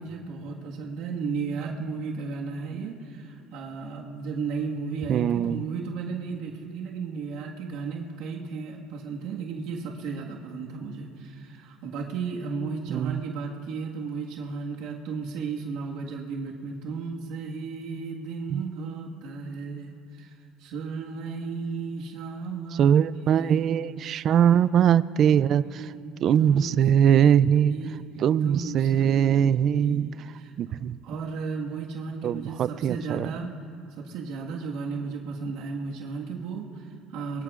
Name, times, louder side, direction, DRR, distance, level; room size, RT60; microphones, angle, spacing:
voice 1, 0.0-23.0 23.3-23.7 25.7-30.5 31.0-33.5 34.0-37.4, right 4 dB, 75° right, -1 dB, 1.7 m, -34 dB
voice 2, 5.1-5.6 12.9-13.2 18.5-18.7 22.8-25.8 26.2-27.8 28.2-30.1 30.6-31.0 32.2-33.3, right 9 dB, 50° right, 18 dB, 0.4 m, -21 dB
23.5 x 21.0 x 2.5 m, 2.5 s
supercardioid pair, 105°, 0 cm